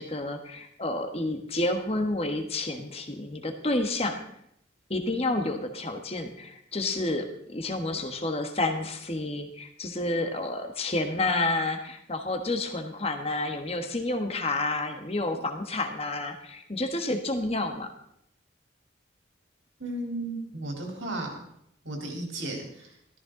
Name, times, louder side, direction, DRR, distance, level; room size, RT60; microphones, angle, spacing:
voice 1, 0.0-4.2 4.9-17.9, left 2 dB, 30° left, 6 dB, 1.4 m, -30 dB
voice 2, 19.8-21.4 21.8-22.9, right 2 dB, 70° right, 0 dB, 3.7 m, -34 dB
14.0 x 14.0 x 3.9 m, 0.74 s
head